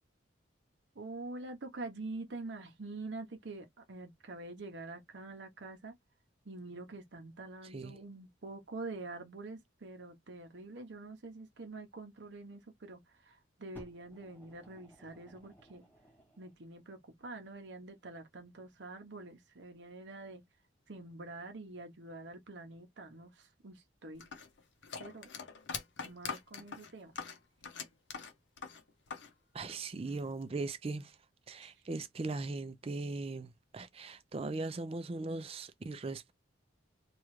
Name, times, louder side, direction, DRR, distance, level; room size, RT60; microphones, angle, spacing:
voice 1, 1.0-5.9 6.5-15.8 16.4-20.4 20.9-24.2 25.0-25.3 26.0-27.1, right 2 dB, 65° right, 0.8 m, -46 dB
voice 2, 7.6-8.0 29.5-31.1 31.5-36.3, right 3 dB, 30° right, 0.4 m, -39 dB
Fire, 13.7-16.6 17.4-17.5, right 1 dB, 10° left, 1.0 m, -58 dB
sound 1, 24.2-29.3 29.6-30.4, left 5 dB, 65° left, 0.7 m, -43 dB
3.0 x 2.3 x 3.1 m
head